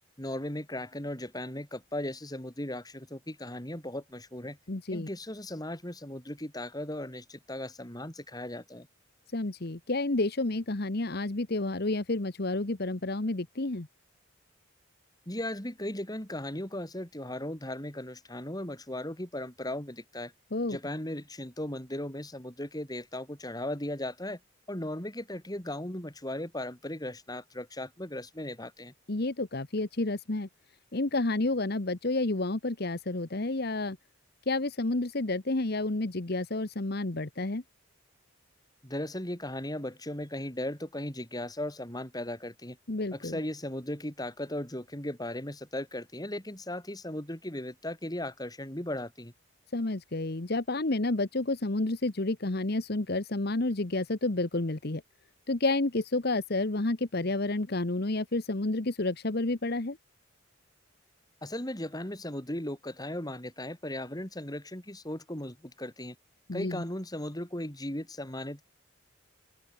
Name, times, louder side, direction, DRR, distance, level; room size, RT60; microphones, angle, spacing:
voice 1, 0.2-4.6 4.9-8.9 15.3-20.3 20.7-24.4 24.7-28.9 38.8-42.8 43.1-49.3 61.4-66.2 66.5-68.6, left 1 dB, 20° left, 3.8 m, -37 dB
voice 2, 4.7-5.1 9.3-13.9 20.5-20.8 29.1-30.5 30.9-34.0 34.5-37.6 42.9-43.4 49.7-55.0 55.5-60.0 66.5-66.8, left 2 dB, 50° left, 1.2 m, -30 dB
open air
head